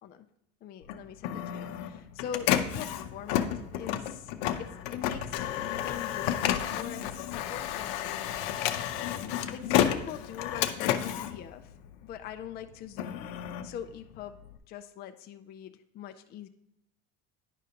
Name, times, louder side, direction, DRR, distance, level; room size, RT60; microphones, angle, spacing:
voice 1, 0.6-4.3 4.6-11.7 12.0-13.3 13.6-14.4 14.7-16.5, left 9 dB, 35° left, 7 dB, 0.4 m, -43 dB
Printer, 0.8-12.3 12.7-14.6, left 11 dB, 80° left, 0.6 m, -31 dB
9.9 x 5.0 x 2.8 m, 0.80 s
cardioid pair, 125°, 30 cm